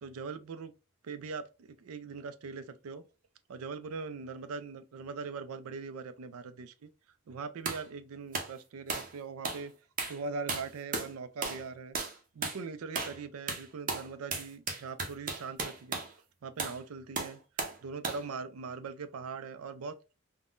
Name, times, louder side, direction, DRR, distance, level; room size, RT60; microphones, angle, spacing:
voice 1, 0.0-0.7 1.0-3.0 3.5-6.9 7.3-9.7 10.1-12.0 12.3-16.0 16.4-17.4 17.8-20.0, right 4 dB, 85° right, 0.4 m, -41 dB
sound 1, 7.7-7.8 8.3-8.5 8.9-9.1 9.4-9.6 10.0-10.2 10.5-11.1 11.4-11.7 11.9-12.2 12.4-12.6 13.0-13.2 13.5-16.1 16.6-16.8 17.2-17.8 18.0-18.3, right 4 dB, 40° right, 0.6 m, -35 dB
3.5 x 2.1 x 2.4 m
head